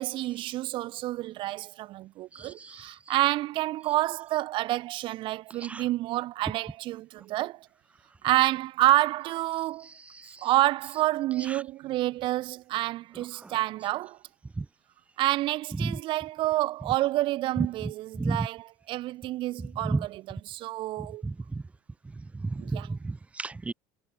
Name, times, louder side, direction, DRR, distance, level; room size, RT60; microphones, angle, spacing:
voice 1, 0.0-7.7 8.2-9.9 10.4-14.2 15.2-21.2 22.6-22.9, right 16 dB, 55° right, 4.0 m, -28 dB
voice 2, 2.3-3.1 5.6-5.8 9.8-10.5 11.4-11.6 13.3-13.6 14.6-14.7 15.8-16.0 18.2-18.5 19.8-20.1 21.2-21.6 22.4-23.7, right 3 dB, 15° right, 1.9 m, -33 dB
supercardioid pair, 120°, 10 cm